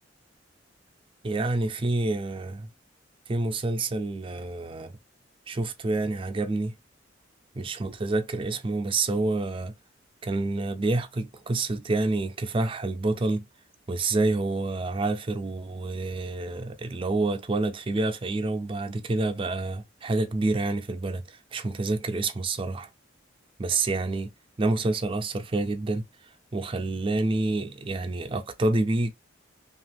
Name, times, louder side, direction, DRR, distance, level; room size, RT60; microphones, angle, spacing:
voice 1, 1.2-2.7 3.3-4.9 5.5-6.7 7.6-9.7 10.2-13.4 13.9-22.9 23.6-24.3 24.6-26.0 26.5-29.1, right 2 dB, 30° right, 0.4 m, -28 dB
2.7 x 2.4 x 3.3 m
head